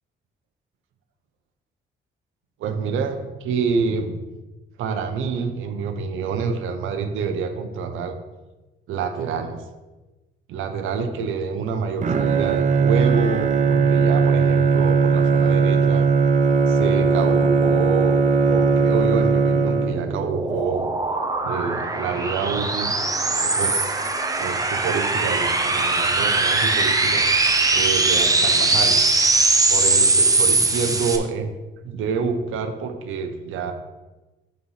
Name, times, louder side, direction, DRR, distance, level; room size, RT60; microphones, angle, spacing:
voice 1, 2.6-4.2 4.8-8.2 8.9-9.6 10.5-16.1 16.7-20.9 21.4-22.9 23.4-23.9 24.4-27.2 27.7-29.0 29.7-31.5 31.8-33.7, right 5 dB, 85° right, 6 dB, 0.8 m, -27 dB
Bowed string instrument, 12.0-20.3, right 5 dB, 40° right, 0.6 m, -18 dB
sound 1, 19.8-31.2, right 3 dB, 15° right, 0.9 m, -21 dB
6.5 x 4.1 x 5.6 m, 1.1 s
cardioid pair, 90°, 20 cm